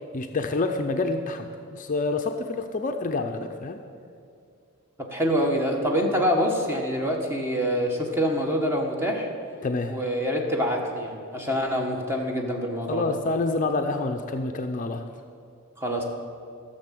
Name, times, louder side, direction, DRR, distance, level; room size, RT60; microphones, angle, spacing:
voice 1, 0.1-3.8 9.6-10.0 12.9-15.0, left 3 dB, 35° left, 5 dB, 0.5 m, -27 dB
voice 2, 5.1-9.3 9.9-13.1 15.8-16.0, equal, 10° right, 1 dB, 1.3 m, -25 dB
13.0 x 6.8 x 7.6 m, 2.4 s
head